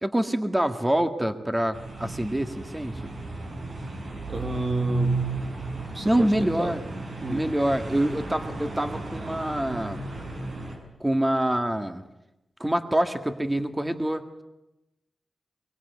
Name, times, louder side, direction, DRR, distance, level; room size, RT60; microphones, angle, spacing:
voice 1, 0.0-3.0 6.0-6.8 7.3-10.0 11.0-12.0 12.6-14.4, right 1 dB, 10° right, 7 dB, 1.8 m, -26 dB
sound 1, 1.7-10.8, right 2 dB, 60° right, 7.6 m, -33 dB
voice 2, 4.3-5.2 5.7-6.8 7.2-7.4, right 2 dB, 40° right, 7 dB, 1.9 m, -32 dB
24.5 x 23.5 x 9.4 m, 0.93 s
wide cardioid pair, 95°, 0 cm